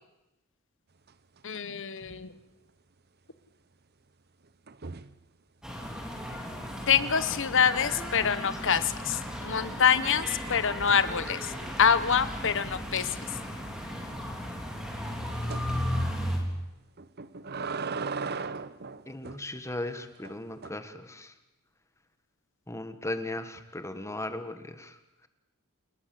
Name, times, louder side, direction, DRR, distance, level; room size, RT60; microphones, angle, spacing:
sound 1, 1.1-1.7 2.0-2.3 4.7-5.2 8.3-8.8 9.3-11.6 12.1-12.2 12.6-12.7 13.0-13.1 15.5-15.7 17.0-19.5 20.2-20.7, right 4 dB, 50° right, 0.9 m, -39 dB
voice 1, 1.4-2.3 6.9-11.5 11.8-13.1, left 7 dB, 60° left, 13 dB, 1.4 m, -25 dB
sound 2, 5.6-16.4, equal, 5° right, 4.8 m, -35 dB
voice 2, 19.1-21.3 22.7-24.9, left 1 dB, 15° left, 9 dB, 1.6 m, -37 dB
28.5 x 21.0 x 7.8 m, 0.97 s
head